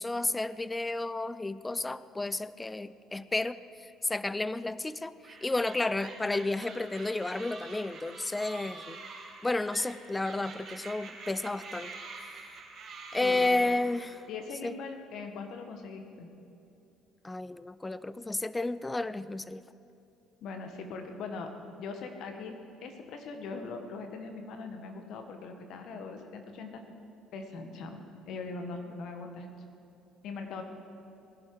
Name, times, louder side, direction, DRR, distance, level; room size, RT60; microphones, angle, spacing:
voice 1, 0.0-9.0 9.4-11.9 12.2-12.6 13.1-14.2 14.6-14.7 17.2-19.6, left 2 dB, 15° left, 16 dB, 0.5 m, -32 dB
sound 1, 5.2-14.3, right 4 dB, 50° right, 2.9 m, -46 dB
voice 2, 14.3-16.3 20.4-21.5 21.8-26.8 27.3-29.5 30.2-30.6, left 4 dB, 60° left, 5 dB, 1.6 m, -41 dB
19.5 x 11.5 x 4.9 m, 2.8 s
hypercardioid pair, 55°, 0 cm